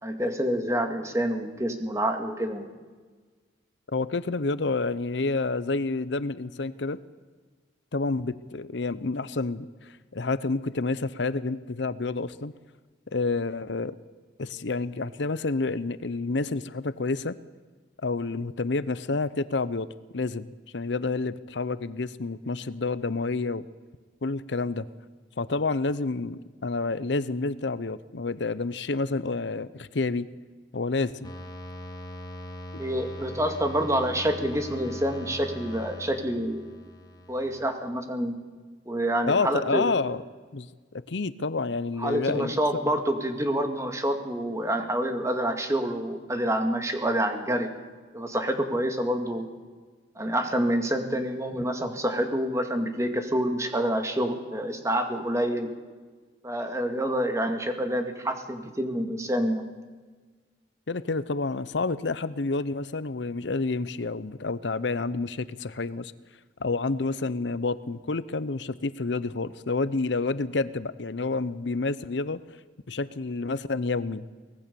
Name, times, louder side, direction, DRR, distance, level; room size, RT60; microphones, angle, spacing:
voice 1, 0.0-2.7 32.8-36.6 37.3-38.3 38.9-39.9 42.0-47.7 48.1-49.5 50.2-55.7 56.4-59.7, right 1 dB, 15° right, 6 dB, 2.1 m, -27 dB
voice 2, 3.9-7.0 7.9-12.5 13.1-13.9 14.4-17.4 18.0-19.9 20.1-23.6 24.2-24.9 25.4-30.3 30.7-31.3 32.7-32.8 39.3-40.2 40.5-40.7 41.1-42.5 60.9-66.1 66.6-72.4 72.9-74.3, left 3 dB, 75° left, 16 dB, 0.8 m, -29 dB
sound 1, 31.2-37.7, equal, 20° left, 2.6 m, -41 dB
24.5 x 18.5 x 7.0 m, 1.4 s
head